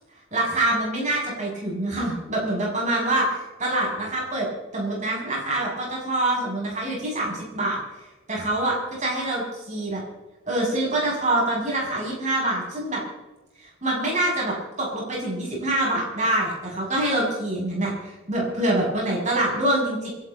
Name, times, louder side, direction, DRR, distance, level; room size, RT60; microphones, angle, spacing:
voice 1, 0.3-3.3 3.6-4.5 4.7-7.8 8.3-10.0 10.5-13.0 13.8-20.1, right 1 dB, 35° right, -3 dB, 7.1 m, -25 dB
28.0 x 12.5 x 4.1 m, 1.1 s
head